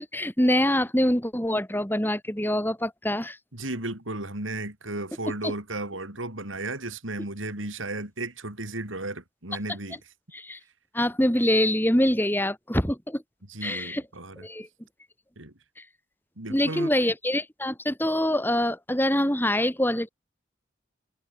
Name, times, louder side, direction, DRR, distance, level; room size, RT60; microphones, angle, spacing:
voice 1, 0.0-3.4 5.4-5.5 10.3-10.6 10.9-13.2 13.6-14.0 14.4-14.7 15.8-15.9 16.5-20.1, left 1 dB, 10° left, 4.7 m, -25 dB
voice 2, 3.5-10.0 13.5-14.5 15.4-15.5 16.4-16.9, right 2 dB, 90° right, 6.0 m, -34 dB
head